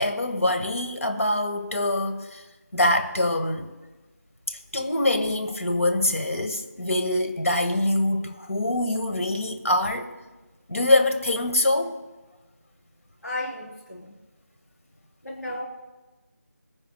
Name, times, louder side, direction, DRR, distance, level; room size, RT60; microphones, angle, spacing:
voice 1, 0.0-2.4 2.7-3.7 4.5-10.1 10.7-12.0, left 1 dB, 50° left, 1.6 m, -24 dB
voice 2, 13.2-14.1 15.2-15.6, left 1 dB, 75° left, 3.9 m, -33 dB
23.5 x 9.9 x 2.3 m
figure-of-eight pair, 170°, 9 cm